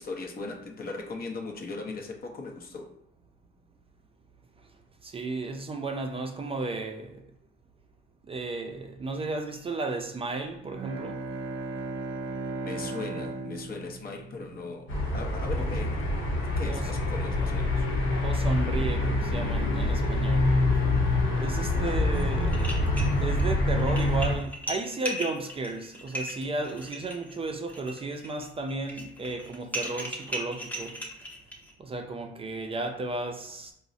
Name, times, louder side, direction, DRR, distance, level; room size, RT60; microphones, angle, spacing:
voice 1, 0.0-2.9 12.6-14.9 15.1-16.0 16.6-17.9 21.5-22.0, left 3 dB, 50° left, 0.6 m, -38 dB
voice 2, 5.0-7.2 8.3-11.2 15.6-15.7 16.7-16.8 18.2-20.5 21.4-22.9 23.2-31.0 31.8-33.7, right 3 dB, 30° right, 0.4 m, -34 dB
Bowed string instrument, 10.6-15.2, right 3 dB, 85° right, 0.5 m, -37 dB
sound 1, 14.9-24.3, left 2 dB, 85° left, 0.8 m, -26 dB
sound 2, 22.1-22.2 22.5-23.4 23.8-31.7, equal, 10° left, 0.7 m, -37 dB
3.8 x 2.0 x 2.5 m
cardioid pair, 90°, 20 cm